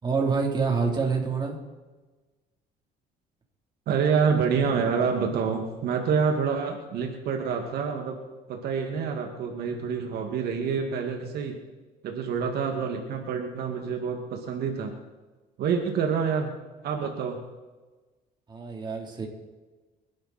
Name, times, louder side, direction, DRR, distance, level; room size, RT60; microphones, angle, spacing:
voice 1, 0.0-1.6 18.5-19.3, right 5 dB, 25° right, 0 dB, 3.8 m, -26 dB
voice 2, 3.9-8.2 8.5-11.5 12.0-14.9 15.6-16.5 16.8-17.4, right 6 dB, 70° right, 3 dB, 2.3 m, -27 dB
27.5 x 11.0 x 4.4 m, 1.2 s
cardioid pair, 110°, 17 cm